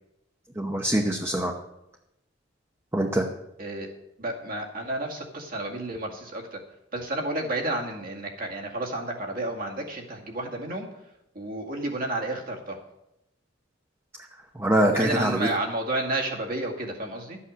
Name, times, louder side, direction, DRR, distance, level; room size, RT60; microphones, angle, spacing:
voice 1, 0.6-1.5 2.9-3.3 14.5-15.5, right 1 dB, 15° right, 2 dB, 0.9 m, -24 dB
voice 2, 4.2-6.6 6.9-10.9 11.3-12.8 14.9-17.4, right 2 dB, 50° right, 0 dB, 2.2 m, -31 dB
12.5 x 8.4 x 6.3 m, 0.87 s
head